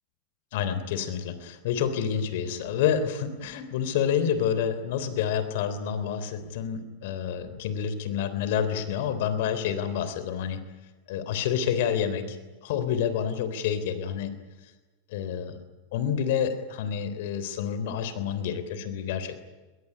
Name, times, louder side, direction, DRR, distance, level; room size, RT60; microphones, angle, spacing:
voice 1, 0.5-10.6 11.1-12.4 12.6-14.3 15.1-15.6 15.9-19.4, left 8 dB, 55° left, 11 dB, 3.5 m, -28 dB
22.5 x 21.5 x 9.7 m, 1.2 s
supercardioid pair, 170°, 0 cm